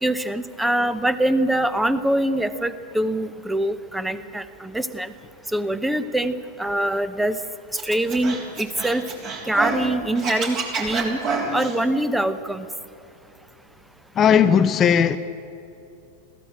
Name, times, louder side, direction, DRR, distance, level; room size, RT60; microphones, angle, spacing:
voice 1, 0.0-5.1 5.5-6.3 6.6-7.4 7.8-9.0 9.5-11.2 11.5-12.7, right 1 dB, 5° right, 13 dB, 0.9 m, -24 dB
Scratching (performance technique), 7.8-9.9 10.2-11.8, right 4 dB, 35° right, 3.5 m, -28 dB
voice 2, 14.2-15.2, left 8 dB, 25° left, 11 dB, 0.6 m, -16 dB
21.0 x 15.5 x 9.0 m, 2.8 s
figure-of-eight pair, 90°, 0 cm